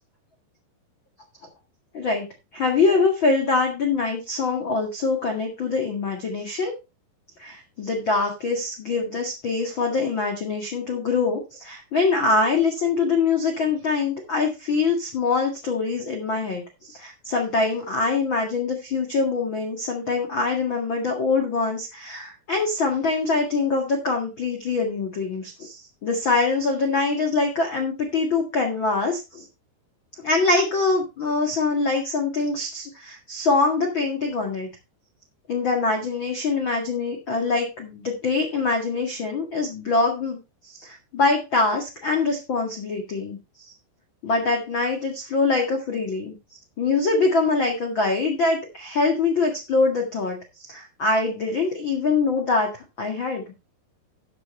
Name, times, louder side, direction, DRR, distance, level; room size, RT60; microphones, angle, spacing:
voice 1, 1.9-2.3 2.5-6.7 7.4-29.4 30.2-34.7 35.5-43.7 44.2-46.4 46.8-53.4, left 3 dB, 45° left, 3 dB, 1.7 m, -24 dB
13.0 x 7.8 x 3.2 m, 0.28 s
omnidirectional pair, 4.9 m